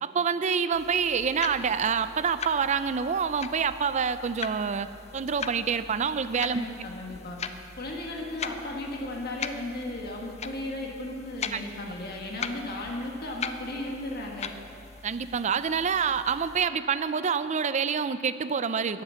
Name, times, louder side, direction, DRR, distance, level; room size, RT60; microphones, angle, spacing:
voice 1, 0.0-4.9 5.1-6.7 11.5-11.6 15.0-19.0, right 6 dB, 35° right, 12 dB, 0.4 m, -27 dB
sound 1, 0.7-16.7, left 6 dB, 35° left, 0.5 m, -41 dB
voice 2, 6.5-7.4 7.8-14.5, left 1 dB, 50° left, -1 dB, 1.8 m, -35 dB
12.5 x 10.0 x 7.0 m, 2.6 s
head